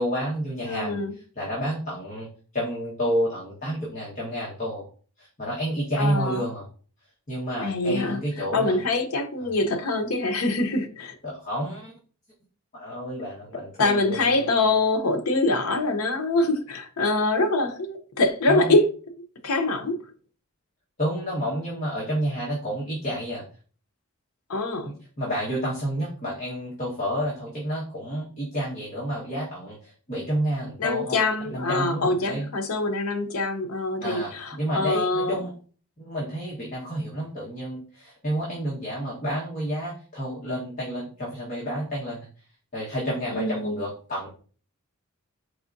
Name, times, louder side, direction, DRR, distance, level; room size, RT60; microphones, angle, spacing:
voice 1, 0.0-2.3 2.5-4.8 5.2-6.6 7.3-8.8 9.4-9.5 11.2-11.9 12.7-14.6 18.5-18.7 21.0-23.4 24.8-31.2 31.4-32.5 34.0-35.5 36.0-42.3 42.7-44.3, equal, 35° left, 1.2 m, -30 dB
voice 2, 0.6-1.2 6.0-6.4 7.6-11.1 13.8-18.8 19.4-20.0 24.5-24.9 30.8-35.4 43.3-43.8, left 2 dB, 75° left, 0.7 m, -24 dB
4.8 x 3.6 x 2.6 m
head